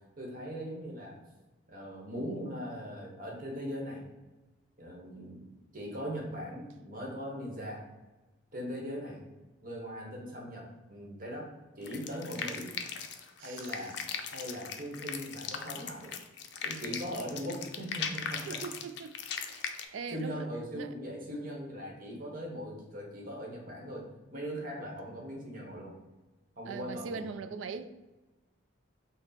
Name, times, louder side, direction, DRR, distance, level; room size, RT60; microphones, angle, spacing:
voice 1, 0.2-1.2 1.7-4.0 4.8-5.4 5.7-7.8 8.5-9.2 9.6-11.5 11.8-12.8 13.4-14.0 14.3-16.1 16.6-18.6 20.1-24.0 24.3-25.9 26.6-27.3, equal, 45° right, 1.0 m, -40 dB
sound 1, 11.9-19.9, left 6 dB, 60° left, 0.4 m, -38 dB
voice 2, 13.4-13.9 18.4-20.5 20.7-20.9 26.7-27.9, right 5 dB, 75° right, 0.3 m, -41 dB
6.0 x 2.0 x 4.1 m
head